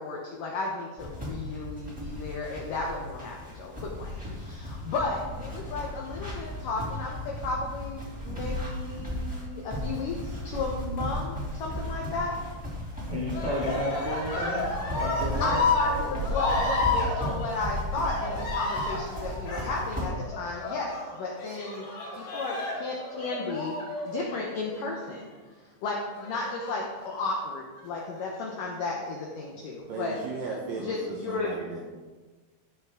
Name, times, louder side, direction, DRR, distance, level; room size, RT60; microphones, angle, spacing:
voice 1, 0.0-12.3 15.4-21.9 22.1-23.8 24.1-25.3 25.8-30.2 30.8-31.5, left 3 dB, 80° left, -1 dB, 1.9 m, -33 dB
sound 1, 1.0-20.1, left 1 dB, 5° right, 1.5 m, -35 dB
voice 2, 13.1-14.7 15.0-15.5, equal, 25° left, -7 dB, 1.0 m, -31 dB
Cheering, 13.2-24.9 26.2-27.1 27.8-28.4, left 2 dB, 55° left, 4.0 m, -32 dB
voice 3, 29.9-31.9, right 3 dB, 75° right, -2 dB, 2.1 m, -36 dB
15.0 x 6.0 x 3.7 m, 1.3 s
omnidirectional pair, 5.1 m